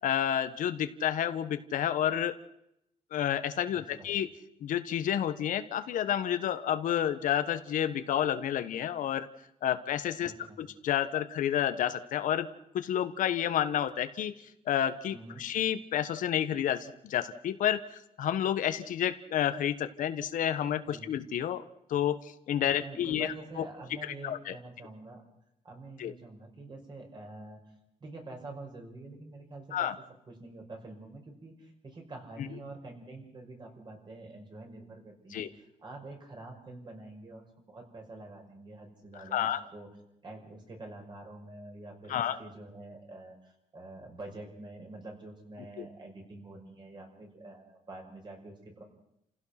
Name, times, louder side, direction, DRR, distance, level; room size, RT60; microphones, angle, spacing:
voice 1, 0.0-2.3 3.1-4.3 4.6-9.3 9.6-10.3 10.6-12.5 12.7-14.3 14.7-17.8 18.2-21.6 21.9-23.3 24.2-24.5 26.0-26.1 29.7-29.9 35.3-35.5 39.2-39.6 42.1-42.4 45.8-45.9, left 10 dB, 90° left, 10 dB, 1.4 m, -30 dB
voice 2, 3.7-4.1 10.2-10.6 15.1-15.4 20.8-21.1 22.6-25.2 25.6-27.6 28.0-29.9 30.3-39.9 40.2-48.8, right 2 dB, 35° right, 2 dB, 5.7 m, -47 dB
29.5 x 16.0 x 6.0 m, 0.78 s
cardioid pair, 140°, 13 cm